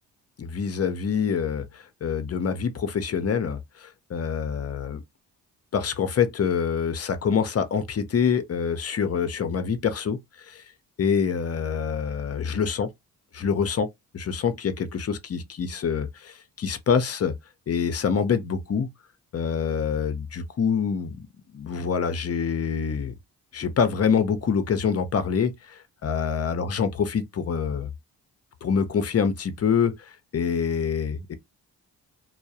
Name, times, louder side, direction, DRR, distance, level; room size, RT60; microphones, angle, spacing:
voice 1, 0.4-5.0 5.7-10.6 11.0-12.9 13.3-13.9 14.1-17.3 17.7-18.9 19.3-21.3 21.5-23.1 23.5-27.9 28.6-31.3, left 6 dB, 35° left, 0.6 m, -26 dB
2.2 x 2.0 x 2.7 m
hypercardioid pair, 40°, 45 cm